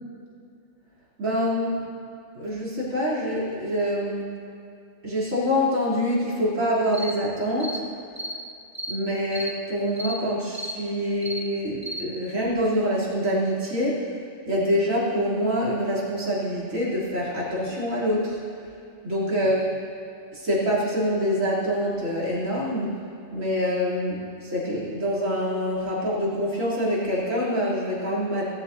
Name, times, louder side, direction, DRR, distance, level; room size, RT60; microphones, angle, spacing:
voice 1, 1.2-1.8 2.3-4.3 5.0-7.8 8.9-14.0 14.4-18.4 19.0-19.7 20.3-23.0 23.3-28.5, equal, 75° right, -7 dB, 3.8 m, -25 dB
sound 1, 6.9-7.2 7.6-7.8 8.2-8.4 8.7-9.0 9.3-9.5 10.0-10.2 10.5-10.8 11.2-11.4 11.8-12.0, equal, 15° right, 0.7 m, -33 dB
18.0 x 14.5 x 2.8 m, 2.5 s
omnidirectional pair, 1.4 m